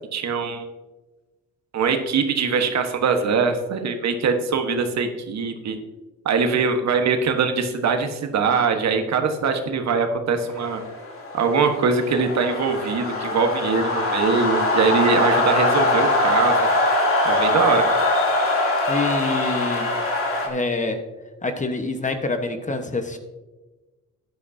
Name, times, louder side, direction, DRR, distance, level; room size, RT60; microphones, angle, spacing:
voice 1, 0.1-0.7 1.7-5.8 6.2-10.8 11.3-16.7 17.2-17.9, right 5 dB, 60° right, 6 dB, 1.4 m, -22 dB
sound 1, 10.6-20.5, left 2 dB, 45° left, 2.8 m, -22 dB
voice 2, 18.9-19.9 20.5-21.0 21.4-23.2, left 3 dB, 25° left, 7 dB, 1.2 m, -26 dB
12.5 x 10.5 x 2.8 m, 1.2 s
cardioid pair, 90°, 30 cm